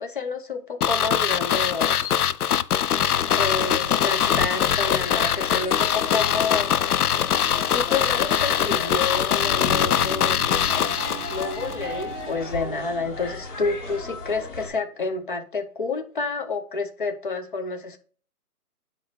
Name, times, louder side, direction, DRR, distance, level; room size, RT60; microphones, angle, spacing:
voice 1, 0.0-2.3 3.3-6.7 7.6-10.4 11.3-18.0, left 4 dB, 35° left, 0.8 m, -29 dB
sound 1, 0.8-11.8 12.0-12.1, left 9 dB, 75° left, 0.6 m, -22 dB
sound 2, 3.0-14.7, left 4 dB, 55° left, 2.7 m, -37 dB
sound 3, 9.3-14.4, right 4 dB, 45° right, 0.7 m, -40 dB
9.4 x 3.2 x 4.3 m
hypercardioid pair, 170°, 46 cm